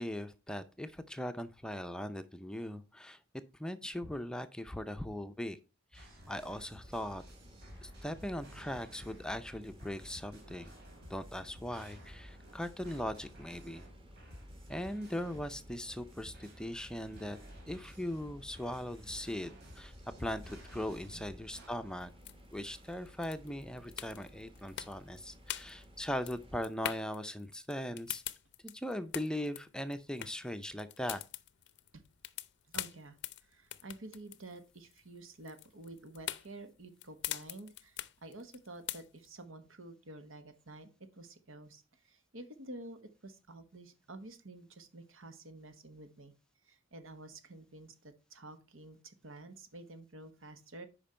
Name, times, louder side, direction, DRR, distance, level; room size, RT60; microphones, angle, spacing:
voice 1, 0.0-3.2 3.5-5.6 5.9-7.2 7.8-10.7 11.1-13.9 14.7-17.4 17.7-22.1 22.5-28.2 28.6-31.2, left 1 dB, 5° left, 9 dB, 0.5 m, -39 dB
sound 1, 5.9-21.7, equal, 55° right, 3.4 m, -54 dB
sound 2, 6.8-26.6, equal, 30° right, 1.5 m, -56 dB
sound 3, 22.0-39.4, left 13 dB, 60° left, 0.5 m, -44 dB
voice 2, 32.7-46.3 46.6-50.9, right 2 dB, 85° right, 9 dB, 1.3 m, -50 dB
8.9 x 5.2 x 4.3 m, 0.31 s
head